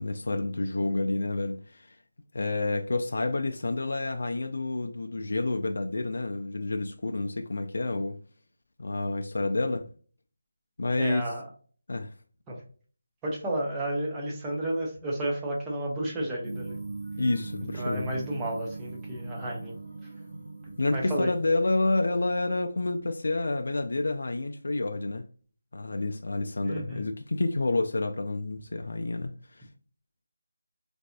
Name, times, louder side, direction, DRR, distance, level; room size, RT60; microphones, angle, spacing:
voice 1, 0.0-1.9 2.3-8.2 8.8-9.9 10.8-11.2 11.9-12.1 17.2-18.2 20.8-25.2 25.7-29.6, left 2 dB, 65° left, 0.3 m, -29 dB
voice 2, 11.0-11.4 12.5-12.6 13.2-16.8 17.7-19.8 20.9-21.3 26.6-27.0, right 1 dB, 10° right, 0.6 m, -32 dB
sound 1, 16.4-21.8, right 3 dB, 25° right, 1.5 m, -40 dB
4.0 x 2.5 x 2.2 m
figure-of-eight pair, 175°, 0 cm